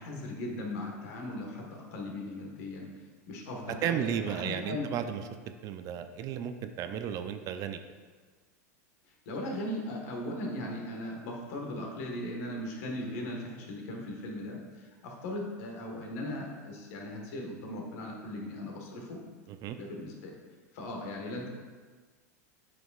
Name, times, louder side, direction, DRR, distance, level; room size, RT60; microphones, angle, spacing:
voice 1, 0.0-2.9 3.3-4.9 9.2-19.2 19.7-20.3 20.7-21.5, left 1 dB, 65° left, 0 dB, 1.4 m, -38 dB
voice 2, 3.8-5.2 5.6-7.8 19.5-19.8, right 9 dB, 45° right, 9 dB, 0.4 m, -33 dB
7.9 x 5.2 x 2.4 m, 1.5 s
hypercardioid pair, 110°, 9 cm